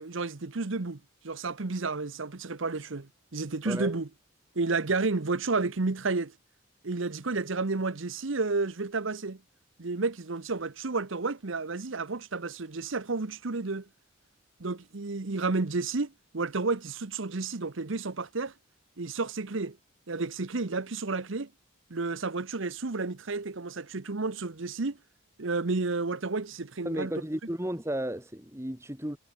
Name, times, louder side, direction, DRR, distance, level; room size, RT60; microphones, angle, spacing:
voice 1, 0.0-4.1 4.5-6.3 6.8-9.4 9.8-13.9 14.6-18.5 19.0-19.8 20.1-21.5 21.9-25.0 25.4-27.1, right 3 dB, 70° right, 1.0 m, -31 dB
voice 2, 26.9-29.2, right 1 dB, 15° right, 2.0 m, -33 dB
head